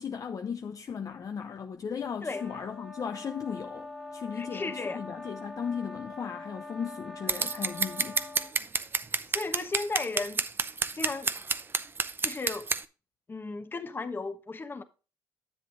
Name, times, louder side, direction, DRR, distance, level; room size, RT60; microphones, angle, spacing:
voice 1, 0.0-8.2, left 6 dB, 40° left, 0.6 m, -36 dB
sound 1, 2.3-8.5, left 3 dB, ahead, 1.3 m, -43 dB
voice 2, 4.3-5.0 9.3-10.4 10.9-11.3 12.2-12.7 13.3-14.8, left 3 dB, 25° left, 1.0 m, -35 dB
Scissors, 7.3-12.8, right 4 dB, 25° right, 0.5 m, -29 dB
10.5 x 7.7 x 2.6 m
cardioid pair, 100°, 9 cm